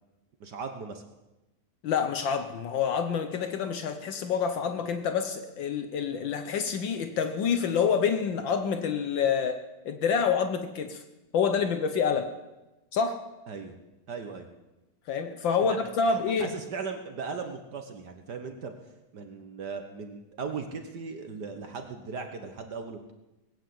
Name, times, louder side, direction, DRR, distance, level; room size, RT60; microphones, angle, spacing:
voice 1, 0.4-1.0 13.5-13.7 14.1-14.5 15.6-18.7 19.1-23.1, right 5 dB, 60° right, 6 dB, 1.7 m, -38 dB
voice 2, 1.8-11.0 11.3-12.3 12.9-13.2 15.1-16.5, left 6 dB, 70° left, 8 dB, 1.6 m, -27 dB
19.5 x 9.0 x 7.7 m, 1.0 s
omnidirectional pair, 2.2 m